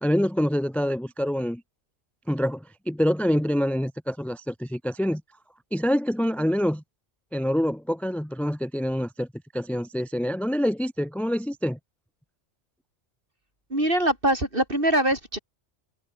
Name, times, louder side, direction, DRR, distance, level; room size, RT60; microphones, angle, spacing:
voice 1, 0.0-1.6 2.3-5.2 5.7-6.8 7.3-9.3 9.5-11.8, equal, ahead, 1.1 m, -26 dB
voice 2, 13.7-15.4, right 1 dB, 50° right, 8.3 m, -23 dB
omnidirectional pair, 1.2 m